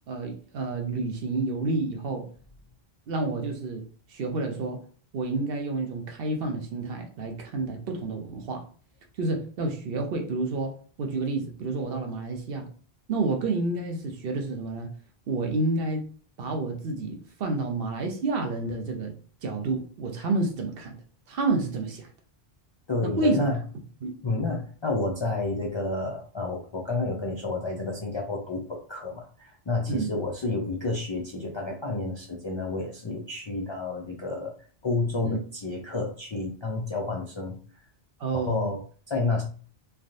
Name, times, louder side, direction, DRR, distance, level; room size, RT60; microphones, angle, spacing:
voice 1, 0.1-2.2 3.1-3.8 4.1-4.8 5.1-8.6 9.2-12.7 13.1-14.9 15.3-16.0 16.4-19.1 19.4-21.0 21.3-22.1 23.0-23.4 24.0-24.1 29.9-30.1 35.2-35.4 38.2-38.7, right 3 dB, 70° right, 3 dB, 0.9 m, -29 dB
voice 2, 22.9-23.6 24.2-34.5 34.8-37.6 38.3-39.4, left 2 dB, 50° left, -1 dB, 0.3 m, -30 dB
3.3 x 2.3 x 2.6 m, 0.42 s
omnidirectional pair, 1.0 m